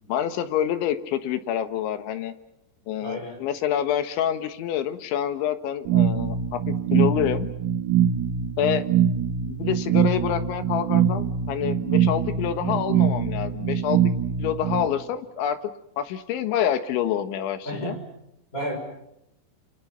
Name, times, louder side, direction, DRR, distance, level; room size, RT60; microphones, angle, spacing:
voice 1, 0.1-2.3 2.9-7.5 8.6-8.9 9.5-14.0 14.4-15.6 16.0-18.0, left 10 dB, 80° left, 9 dB, 3.8 m, -27 dB
voice 2, 3.0-3.4 17.6-18.0 18.5-18.8, right 1 dB, 15° left, 3 dB, 6.3 m, -32 dB
sound 1, 5.9-14.9, right 8 dB, 85° right, 4.6 m, -23 dB
28.5 x 28.5 x 5.9 m, 0.83 s
omnidirectional pair, 5.4 m